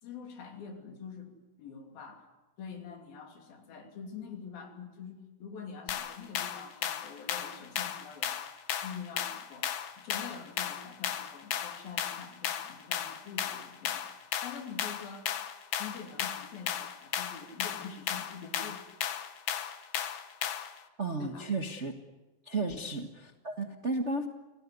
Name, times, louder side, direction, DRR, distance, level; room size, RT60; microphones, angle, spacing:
voice 1, 0.0-2.3 2.6-8.3 8.8-14.1 14.4-15.3 15.8-18.8 21.2-21.5 22.6-22.9, left 6 dB, 85° left, 3 dB, 4.9 m, -45 dB
sound 1, 5.9-20.8, left 10 dB, 65° left, 2.4 m, -35 dB
voice 2, 21.0-21.9 22.4-24.3, right 3 dB, 45° right, 4 dB, 0.8 m, -33 dB
28.5 x 18.0 x 9.6 m, 1.1 s
omnidirectional pair, 4.1 m